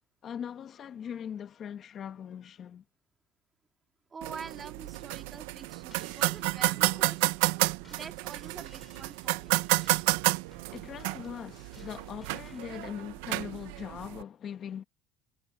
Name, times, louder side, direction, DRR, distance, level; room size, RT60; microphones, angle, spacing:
voice 1, 0.2-2.8 6.9-7.0 10.7-14.8, left 8 dB, 45° left, 1.3 m, -41 dB
voice 2, 4.1-7.3 7.9-9.6, right 5 dB, 30° right, 2.5 m, -45 dB
sound 1, 4.2-14.2, right 21 dB, 85° right, 0.7 m, -31 dB
sound 2, 4.9-12.7, left 4 dB, 20° left, 4.8 m, -60 dB
supercardioid pair, 105°, 0 cm